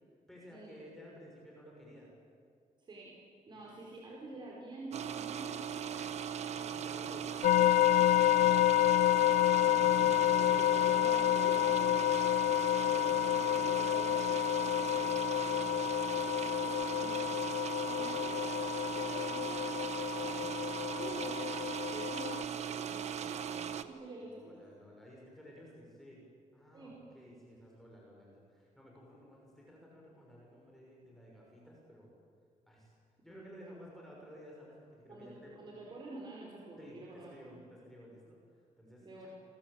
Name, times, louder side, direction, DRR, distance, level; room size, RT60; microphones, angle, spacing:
voice 1, 0.3-2.1 3.5-3.8 6.5-8.8 10.3-10.6 12.7-17.5 17.7-18.3 19.0-19.4 20.1-20.3 20.8-21.3 24.2-26.2 26.5-32.1 32.7-32.9 33.2-35.6 36.8-39.3, equal, ahead, -3 dB, 6.4 m, -54 dB
voice 2, 2.8-3.2 3.5-6.5 9.4-12.0 17.8-18.5 18.9-19.7 20.0-20.6 20.9-24.6 26.7-27.0 33.3-33.8 35.1-37.6 39.0-39.3, right 2 dB, 35° right, -3 dB, 5.0 m, -48 dB
sound 1, 4.9-23.8, right 8 dB, 55° right, 1.3 m, -39 dB
sound 2, 7.4-22.4, left 16 dB, 80° left, 0.6 m, -29 dB
29.0 x 22.5 x 8.9 m, 2.3 s
wide cardioid pair, 180°, 13 cm